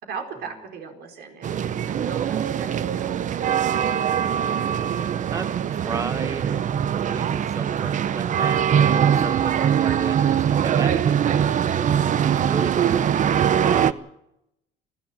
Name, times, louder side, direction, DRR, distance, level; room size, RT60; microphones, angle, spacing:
voice 1, 0.0-3.2, right 6 dB, 75° right, 4 dB, 4.7 m, -38 dB
sound 1, 1.4-13.9, right 9 dB, 50° right, 0.8 m, -22 dB
voice 2, 4.1-4.6 5.3-6.8 7.1-11.8 12.2-14.1, right 3 dB, 20° right, 10 dB, 1.1 m, -35 dB
30.0 x 12.0 x 7.5 m, 0.83 s
cardioid pair, 110°, 17 cm